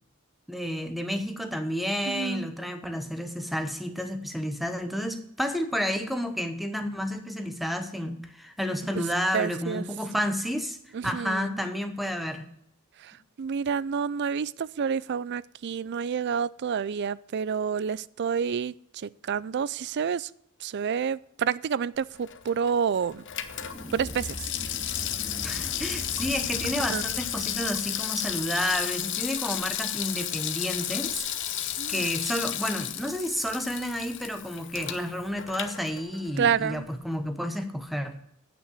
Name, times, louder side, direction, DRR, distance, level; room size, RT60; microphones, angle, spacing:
voice 1, 0.5-10.8 11.0-12.4 25.4-31.3 31.5-38.1, equal, ahead, 8 dB, 1.0 m, -31 dB
voice 2, 2.1-2.5 9.3-9.8 10.9-11.5 13.4-18.7 19.3-20.3 20.6-23.2 23.9-24.4 26.9-27.0 31.8-32.0 36.4-36.8, right 7 dB, 50° right, 20 dB, 0.4 m, -28 dB
Water tap faucet / Sink (filling or washing), 22.1-36.4 36.7-36.8, left 11 dB, 55° left, 0.9 m, -33 dB
sound 1, 23.2-28.1, left 1 dB, 20° left, 2.2 m, -41 dB
9.3 x 5.9 x 8.3 m, 0.74 s
head